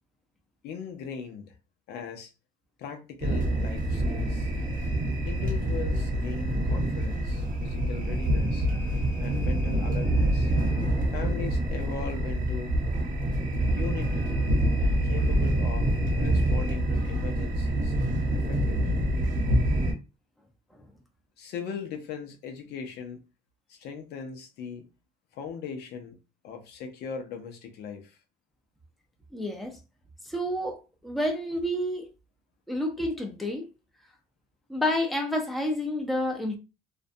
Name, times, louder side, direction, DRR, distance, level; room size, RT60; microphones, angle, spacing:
voice 1, 0.6-1.5 1.9-2.3 2.8-4.5 5.2-8.7 9.2-10.5 11.1-12.7 13.7-14.4 15.0-18.0 18.3-19.0 21.4-23.2 23.7-24.9 25.3-26.2 26.4-28.2, left 6 dB, 75° left, 0.6 m, -39 dB
sound 1, 3.2-19.9, right 1 dB, 55° right, 0.8 m, -26 dB
voice 2, 29.3-29.8 30.2-32.1 32.7-33.6 34.7-36.6, left 1 dB, ahead, 0.6 m, -29 dB
2.5 x 2.2 x 2.5 m
cardioid pair, 110°, 17 cm